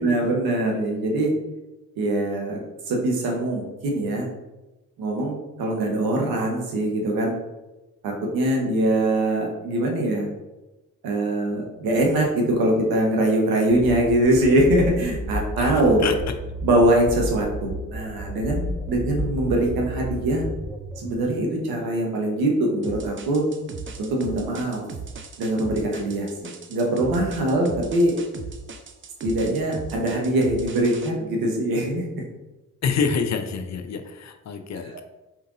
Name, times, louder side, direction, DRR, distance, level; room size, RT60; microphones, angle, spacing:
voice 1, 0.0-1.3 2.0-2.6 2.9-4.3 5.0-7.3 8.0-10.3 11.0-16.0 16.6-18.6 18.9-20.4 21.0-23.4 24.0-24.8 25.4-28.1 29.2-32.0, right 1 dB, 75° right, 0 dB, 1.1 m, -22 dB
sound 1, 13.7-21.3, equal, ahead, 0.8 m, -32 dB
voice 2, 15.6-16.2 32.8-35.0, left 5 dB, 50° left, 8 dB, 0.6 m, -27 dB
sound 2, 22.8-31.1, right 5 dB, 35° right, 0.6 m, -37 dB
4.4 x 3.7 x 2.6 m, 1.0 s
hypercardioid pair, 45°, 36 cm